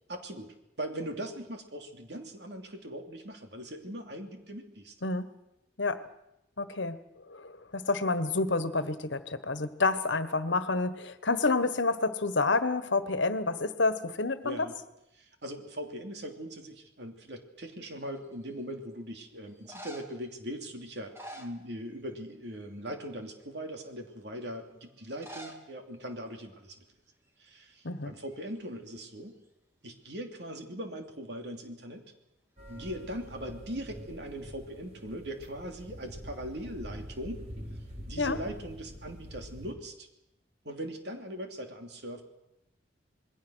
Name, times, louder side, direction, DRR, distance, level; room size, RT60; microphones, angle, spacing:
voice 1, 0.1-4.9 14.4-14.8 15.1-26.8 27.4-29.4 29.8-32.0 32.7-37.4 38.1-40.1 40.6-42.2, equal, 65° right, 4 dB, 2.9 m, -40 dB
voice 2, 6.6-7.0 7.3-14.7 27.8-28.1 38.2-38.4, left 3 dB, 85° left, 12 dB, 1.4 m, -29 dB
sound 1, 18.0-18.5 19.5-20.3 20.9-22.2 22.4-22.8 23.4-23.5 25.1-25.7 25.9-26.0 26.2-26.3 27.1-27.3 27.6-28.8 32.7-33.4, right 1 dB, 15° right, 2.3 m, -48 dB
sound 2, 32.6-39.7, equal, 35° right, 4.2 m, -45 dB
27.5 x 21.0 x 6.4 m, 0.87 s
head